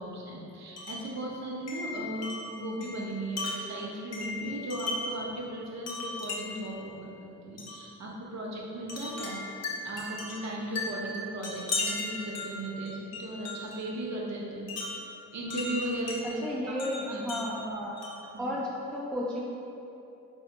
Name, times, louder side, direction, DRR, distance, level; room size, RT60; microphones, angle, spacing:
voice 1, 0.0-9.4 9.8-14.7 15.3-17.4 18.3-18.5, right 1 dB, 40° right, -3 dB, 0.7 m, -37 dB
Wind chime, 0.8-1.1 1.7-5.2 5.9-6.7 7.6-7.8 8.9-13.8 14.7-16.2 16.8-18.3, left 2 dB, 35° left, 0.7 m, -37 dB
voice 2, 16.4-18.0 18.4-19.4, left 1 dB, ahead, -5 dB, 0.4 m, -33 dB
4.0 x 2.0 x 2.8 m, 2.8 s
hypercardioid pair, 45°, 43 cm